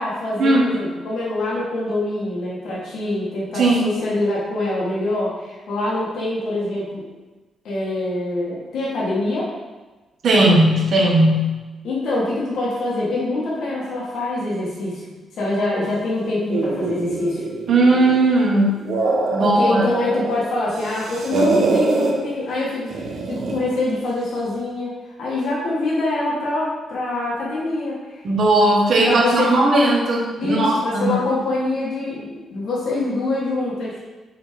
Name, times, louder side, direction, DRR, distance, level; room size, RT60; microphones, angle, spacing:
voice 1, 0.0-7.0 7.6-9.5 11.8-15.1 15.3-17.4 19.4-24.9 25.2-28.2 29.0-29.6 30.4-34.0, left 2 dB, 70° left, -6 dB, 1.9 m, -25 dB
voice 2, 10.2-11.5 17.7-18.8 19.3-19.8 28.2-31.2, right 1 dB, 50° right, -2 dB, 1.4 m, -17 dB
sound 1, 16.5-18.3 18.7-20.4 20.7-22.1 22.9-23.7, right 3 dB, 65° right, 1.2 m, -23 dB
7.1 x 3.7 x 4.8 m, 1.2 s
cardioid pair, 150°, 0 cm